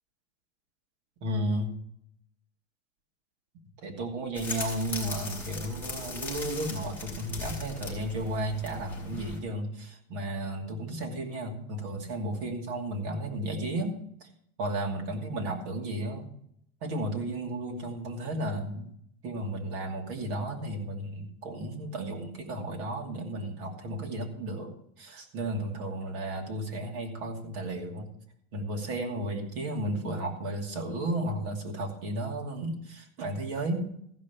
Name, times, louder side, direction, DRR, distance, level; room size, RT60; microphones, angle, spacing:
voice 1, 1.2-1.7 3.8-13.9 14.2-14.3 14.6-16.3 16.8-18.9 19.2-28.1 28.5-33.9, right 1 dB, 60° right, 2 dB, 2.8 m, -33 dB
sound 1, 4.3-9.4, left 3 dB, 5° left, 3.5 m, -39 dB
15.0 x 5.5 x 7.0 m, 0.69 s
supercardioid pair, 175°, 39 cm